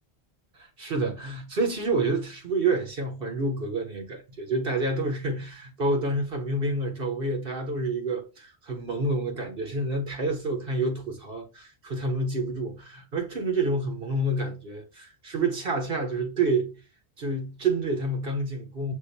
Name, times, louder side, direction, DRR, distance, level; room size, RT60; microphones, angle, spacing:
voice 1, 0.5-16.7 17.2-18.9, right 2 dB, 55° right, 1.2 m, -28 dB
6.4 x 2.6 x 2.6 m
omnidirectional pair, 1.1 m